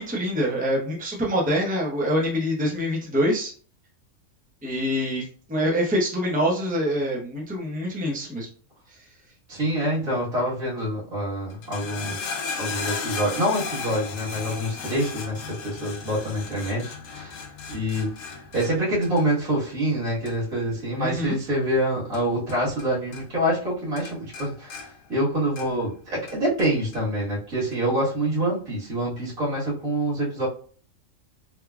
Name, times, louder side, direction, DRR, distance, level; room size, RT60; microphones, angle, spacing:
voice 1, 0.0-3.5 4.6-8.5 12.0-12.1 21.0-21.4, equal, 10° right, -3 dB, 0.7 m, -25 dB
voice 2, 9.5-17.4 17.7-18.1 18.5-30.5, right 1 dB, 90° right, -6 dB, 2.0 m, -26 dB
sound 1, 11.5-22.9 23.1-23.7 24.0-25.9 26.3-27.0 27.7-27.8, left 5 dB, 75° left, 1.0 m, -36 dB
3.5 x 3.0 x 2.3 m, 0.42 s
omnidirectional pair, 1.4 m